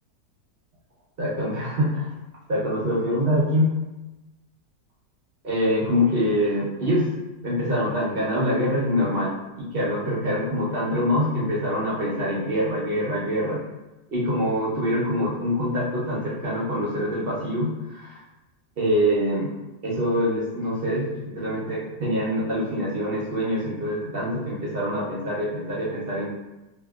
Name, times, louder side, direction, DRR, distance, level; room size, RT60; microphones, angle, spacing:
voice 1, 1.2-2.2 2.5-3.7 5.4-13.6 14.1-18.2 18.8-19.5 19.8-26.3, equal, 50° right, -7 dB, 0.7 m, -25 dB
2.7 x 2.7 x 2.3 m, 1.0 s
omnidirectional pair, 1.7 m